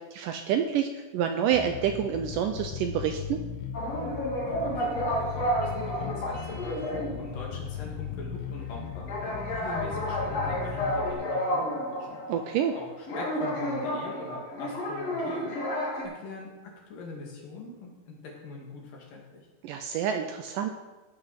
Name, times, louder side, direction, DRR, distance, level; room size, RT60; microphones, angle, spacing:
voice 1, 0.1-3.4 12.3-12.7 19.6-20.7, right 9 dB, 75° right, 6 dB, 2.0 m, -28 dB
Bass guitar, 1.5-11.1, left 8 dB, 85° left, 2.8 m, -38 dB
sound 1, 3.7-7.6 7.9-8.0 9.1-12.8 13.1-16.0, equal, 50° left, 3.1 m, -31 dB
voice 2, 4.4-12.2 12.7-19.4, left 3 dB, 65° left, -1 dB, 3.8 m, -42 dB
15.0 x 6.8 x 5.8 m, 1.2 s
omnidirectional pair, 4.3 m